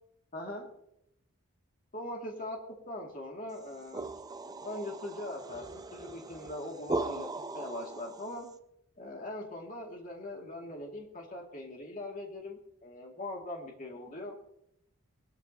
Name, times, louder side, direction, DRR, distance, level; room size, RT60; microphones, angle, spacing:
voice 1, 0.3-0.7 1.9-2.6 2.9-4.1 4.4-7.3 7.5-8.5 9.0-14.4, left 1 dB, 35° left, 0 dB, 2.0 m, -41 dB
sound 1, 3.6-8.5, right 2 dB, 15° right, 0.4 m, -39 dB
19.5 x 12.5 x 2.7 m, 0.77 s
head